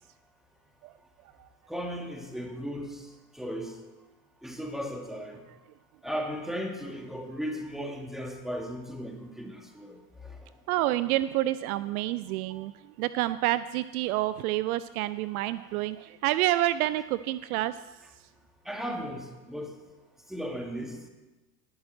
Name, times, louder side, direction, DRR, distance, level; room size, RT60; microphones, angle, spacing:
voice 1, 1.7-3.8 4.4-5.4 6.0-10.4 18.7-19.8 20.3-21.0, equal, ahead, 2 dB, 2.4 m, -36 dB
voice 2, 10.7-17.8, right 15 dB, 60° right, 15 dB, 0.6 m, -28 dB
18.5 x 10.5 x 4.3 m, 1.1 s
hypercardioid pair, 80°, 50 cm